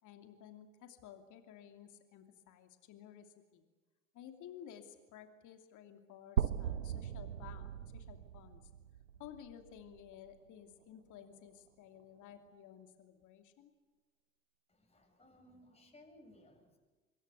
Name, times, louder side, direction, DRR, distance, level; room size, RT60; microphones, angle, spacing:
voice 1, 0.0-3.6 4.1-8.7 9.2-13.7, left 9 dB, 50° left, 6 dB, 2.8 m, -54 dB
sound 1, 6.4-10.3, right 9 dB, 90° right, 0.9 m, -39 dB
voice 2, 14.7-16.8, left 1 dB, 15° left, 3 dB, 7.7 m, -61 dB
27.0 x 22.5 x 8.3 m, 1.3 s
hypercardioid pair, 70°, 39 cm